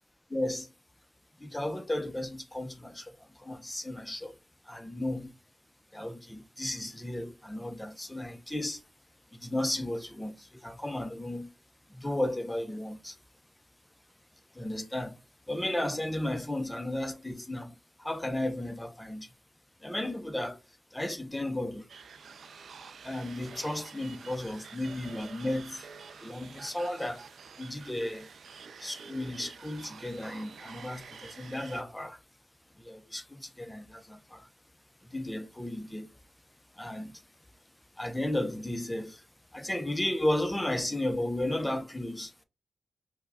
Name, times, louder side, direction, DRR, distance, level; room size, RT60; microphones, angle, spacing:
voice 1, 0.3-0.7 1.4-4.4 4.6-5.4 5.9-8.8 9.3-11.5 11.9-13.2 14.5-15.2 15.5-19.3 19.8-21.9 23.0-25.9 26.2-27.2 27.6-28.3 28.8-32.2 32.8-34.5 35.0-36.1 36.7-37.2 38.0-39.3 39.5-42.4, left 1 dB, 10° left, 0.4 m, -34 dB
sound 1, 21.9-31.8, right 5 dB, 70° right, 0.3 m, -48 dB
4.6 x 2.0 x 2.6 m
cardioid pair, 85°, 0 cm